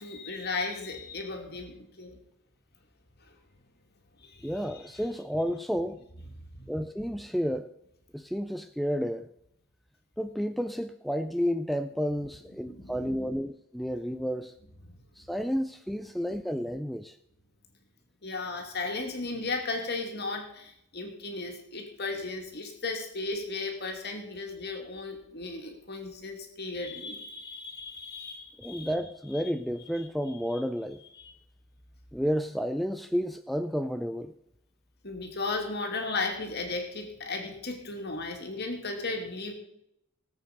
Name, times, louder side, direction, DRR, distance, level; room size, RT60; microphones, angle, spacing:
voice 1, 0.0-2.2 3.2-3.3 4.2-4.7 6.5-6.7 12.6-13.3 14.8-14.9 18.2-28.9 29.3-29.5 31.2-31.3 35.0-39.5, left 3 dB, 50° left, 3 dB, 2.6 m, -35 dB
voice 2, 4.4-6.0 6.7-7.7 8.1-9.3 10.2-14.5 15.2-17.2 28.6-31.0 32.1-34.3, equal, ahead, 9 dB, 0.4 m, -31 dB
18.5 x 8.2 x 5.2 m, 0.79 s
head